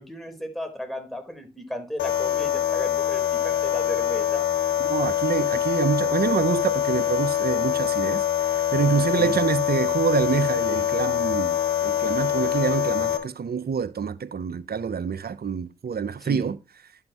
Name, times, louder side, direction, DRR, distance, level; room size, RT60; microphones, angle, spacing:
voice 1, 0.0-4.5 9.1-9.4 16.2-16.5, equal, ahead, 4.2 m, -35 dB
sound 1, 2.0-13.2, left 11 dB, 80° left, 1.4 m, -24 dB
voice 2, 4.9-8.2 8.7-16.6, right 6 dB, 55° right, 0.9 m, -26 dB
11.5 x 5.9 x 3.1 m
supercardioid pair, 40°, 19 cm